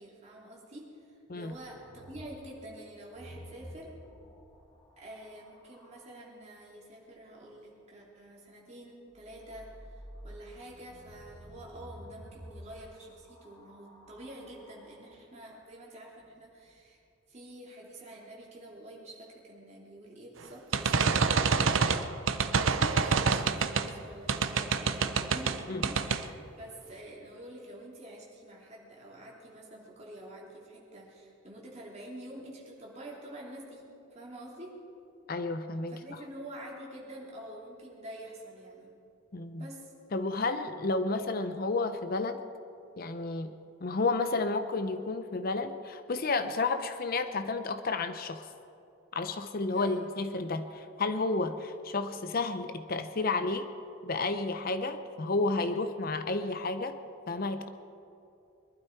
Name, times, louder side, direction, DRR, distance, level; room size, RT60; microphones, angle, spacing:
voice 1, 0.0-4.0 5.0-17.0 17.3-21.9 22.5-34.7 35.9-38.9 39.6-39.9 49.7-50.0, right 1 dB, 30° right, -4 dB, 3.1 m, -47 dB
sound 1, 1.5-6.1 9.1-15.2 16.2-16.8, equal, 20° left, 2.0 m, -51 dB
sound 2, 20.7-23.9 24.3-25.6 25.8-26.2, right 5 dB, 65° right, 0.6 m, -26 dB
voice 2, 35.3-36.0 39.3-39.7 40.1-42.4 43.0-43.5 43.8-48.5 49.1-53.7 54.0-57.0 57.3-57.7, left 3 dB, 45° left, 9 dB, 0.6 m, -31 dB
22.5 x 12.0 x 4.6 m, 2.7 s
head